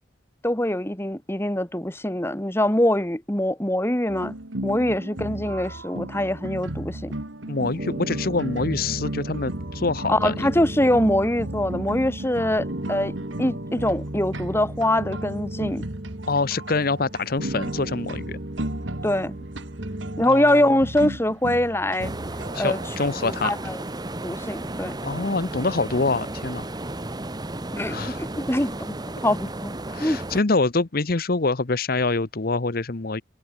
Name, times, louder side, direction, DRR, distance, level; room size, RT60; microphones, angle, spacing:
voice 1, 0.4-4.3 4.6-7.1 10.1-13.1 13.4-15.9 19.0-19.4 20.2-22.1 22.6-22.8 23.2-23.8 24.2-24.9 27.7-29.0 29.2-29.7 30.0-30.2, left 1 dB, 10° left, 2.1 m, -23 dB
sound 1, 4.1-23.7, right 1 dB, 75° right, 2.4 m, -35 dB
voice 2, 7.5-10.5 16.3-18.4 20.2-20.8 22.5-23.5 25.0-26.7 27.9-28.2 29.9-33.2, left 3 dB, 50° left, 0.9 m, -25 dB
sound 2, 7.7-20.3, right 1 dB, 45° right, 1.9 m, -35 dB
sound 3, 22.0-30.4, right 1 dB, 20° right, 1.2 m, -33 dB
head